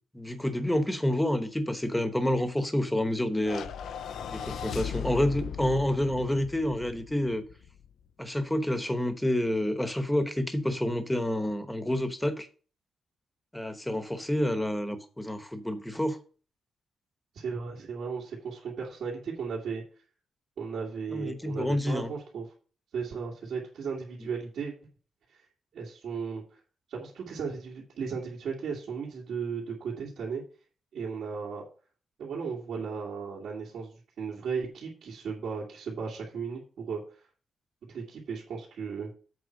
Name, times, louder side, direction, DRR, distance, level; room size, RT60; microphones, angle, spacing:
voice 1, 0.1-3.7 4.3-7.4 8.2-12.5 13.5-16.2 21.1-22.1, left 1 dB, 5° left, 9 dB, 0.9 m, -28 dB
sound 1, 3.4-7.9, left 8 dB, 90° left, 0.5 m, -38 dB
voice 2, 17.3-19.8 20.6-22.5 22.9-24.7 25.3-25.4 25.7-26.4 26.9-30.4 30.9-31.6 32.2-37.0 37.9-39.1, right 5 dB, 80° right, -6 dB, 2.4 m, -35 dB
7.9 x 4.6 x 6.4 m, 0.39 s
wide cardioid pair, 155°, 0 cm